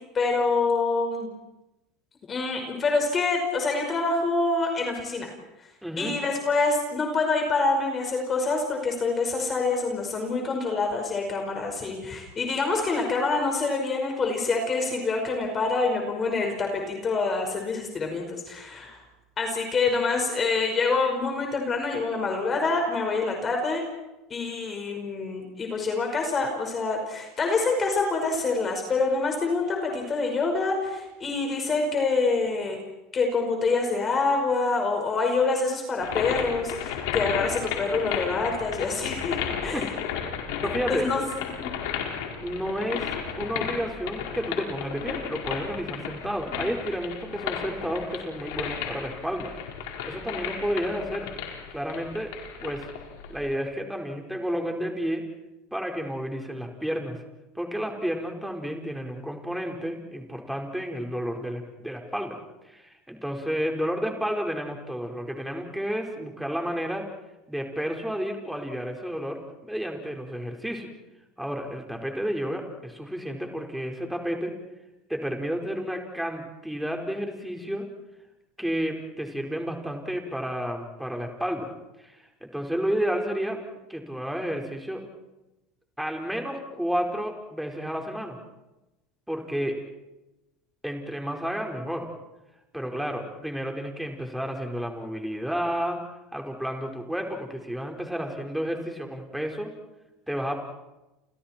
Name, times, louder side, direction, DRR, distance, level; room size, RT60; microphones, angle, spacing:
voice 1, 0.1-1.3 2.3-5.3 6.0-19.0 19.4-23.8 24.3-32.8 33.1-39.8 40.9-41.7 46.6-46.7, left 3 dB, 30° left, 3 dB, 5.3 m, -26 dB
voice 2, 5.8-6.2 39.7-39.8 40.6-41.1 42.4-43.1 43.4-49.5 50.0-51.3 51.7-52.3 52.6-52.9 53.3-55.2 55.7-57.2 57.5-62.4 62.6-67.1 67.5-70.9 71.4-74.6 75.1-77.9 78.6-81.7 82.0-83.6 83.9-85.0 86.0-88.4 89.3-89.8 90.8-92.1 92.7-96.0 96.3-99.7 100.3-100.5, equal, 5° right, 2 dB, 4.7 m, -31 dB
sound 1, 36.0-53.5, left 8 dB, 80° left, 4.9 m, -33 dB
29.5 x 29.5 x 4.5 m, 1.0 s
supercardioid pair, 110°, 0 cm